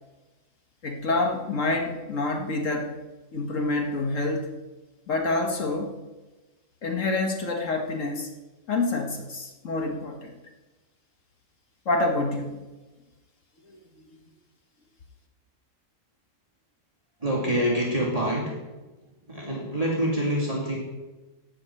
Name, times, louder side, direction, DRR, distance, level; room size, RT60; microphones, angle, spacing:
voice 1, 0.8-3.0 3.3-4.5 5.1-5.9 6.8-8.3 8.7-10.3 11.9-12.6 13.7-13.8, left 2 dB, 70° left, 3 dB, 1.8 m, -27 dB
voice 2, 17.2-18.8 19.3-20.8, equal, 25° right, -4 dB, 2.4 m, -26 dB
15.0 x 9.8 x 4.4 m, 1.1 s
omnidirectional pair, 1.4 m